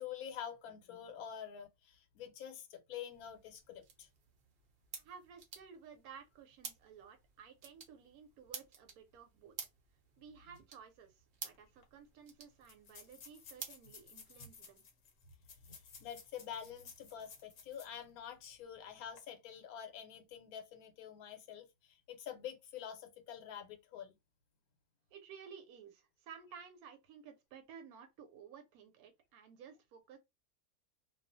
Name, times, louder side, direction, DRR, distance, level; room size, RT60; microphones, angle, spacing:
voice 1, 0.0-4.1 15.7-24.2, left 9 dB, 80° left, 1.1 m, -47 dB
sound 1, 3.1-14.6, right 6 dB, 60° right, 0.6 m, -53 dB
voice 2, 4.9-9.5 10.2-14.8 25.1-30.2, right 7 dB, 85° right, 1.1 m, -55 dB
sound 2, 11.5-11.6 11.8-11.9 12.6-18.0 18.4-18.5 19.0-19.2, left 5 dB, 55° left, 0.8 m, -57 dB
2.3 x 2.3 x 2.6 m
omnidirectional pair, 1.6 m